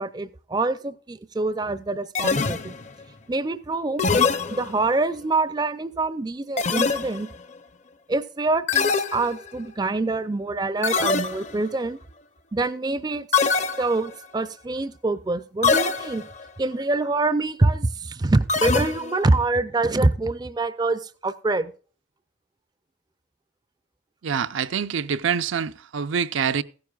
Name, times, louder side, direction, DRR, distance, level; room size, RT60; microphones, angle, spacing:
voice 1, 0.0-2.7 3.3-4.1 4.5-7.3 8.1-12.0 12.5-16.3 16.6-21.7, right 2 dB, 20° right, 0.4 m, -25 dB
retro gaming FX I, 2.1-3.0 4.0-5.0 6.6-7.4 8.7-9.7 10.8-11.7 13.3-14.3 15.6-16.4 18.5-19.4, left 5 dB, 35° left, 0.6 m, -24 dB
voice 2, 24.2-26.6, right 7 dB, 80° right, 0.5 m, -25 dB
15.5 x 9.5 x 2.4 m
head